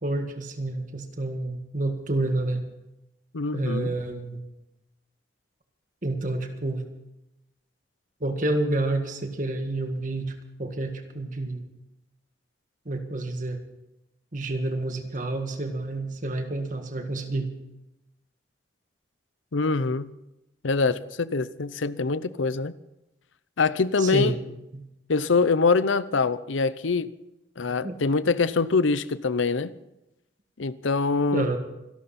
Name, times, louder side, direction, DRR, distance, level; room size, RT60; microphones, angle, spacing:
voice 1, 0.0-2.6 3.5-4.4 6.0-6.8 8.2-10.3 10.6-11.6 12.9-13.6 14.3-17.5 24.0-24.3 24.7-24.8 27.8-28.0 31.3-31.6, right 2 dB, 40° right, 5 dB, 1.8 m, -29 dB
voice 2, 3.3-4.0 19.5-20.1 20.6-22.7 23.6-24.3 25.1-27.1 27.6-29.7 30.6-31.5, left 4 dB, 85° left, 16 dB, 0.7 m, -24 dB
26.0 x 12.5 x 4.3 m, 0.92 s
head